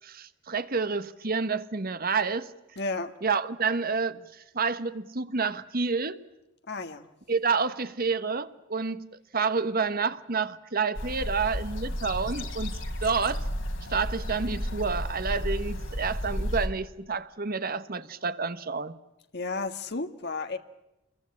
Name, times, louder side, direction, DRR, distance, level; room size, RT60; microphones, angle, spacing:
voice 1, 0.0-2.5 3.2-4.2 4.5-6.2 7.3-13.5 13.9-19.0, right 5 dB, 50° right, 1.4 m, -29 dB
voice 2, 2.8-3.1 6.7-7.1 19.3-20.6, left 3 dB, 60° left, 1.8 m, -32 dB
sound 1, 10.9-16.7, equal, 75° left, 4.2 m, -32 dB
28.0 x 22.0 x 8.6 m
head